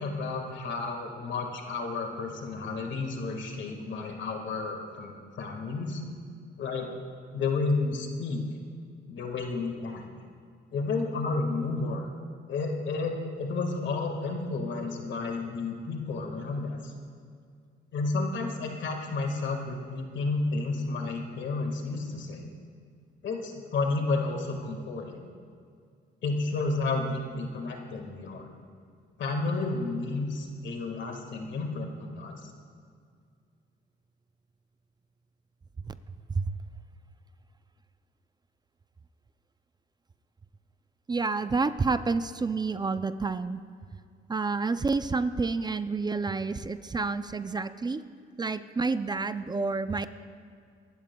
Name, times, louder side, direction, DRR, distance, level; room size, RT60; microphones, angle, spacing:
voice 1, 0.0-6.0 6.6-6.9 7.3-8.4 9.1-10.1 10.7-12.1 12.5-16.9 17.9-22.5 23.2-25.3 26.2-28.5 29.2-32.5, left 3 dB, 65° left, 3 dB, 1.8 m, -31 dB
voice 2, 41.1-43.6 44.3-48.0 48.4-50.1, right 4 dB, 20° right, 12 dB, 0.4 m, -29 dB
24.0 x 12.5 x 2.3 m, 2.2 s
cardioid pair, 90°, 20 cm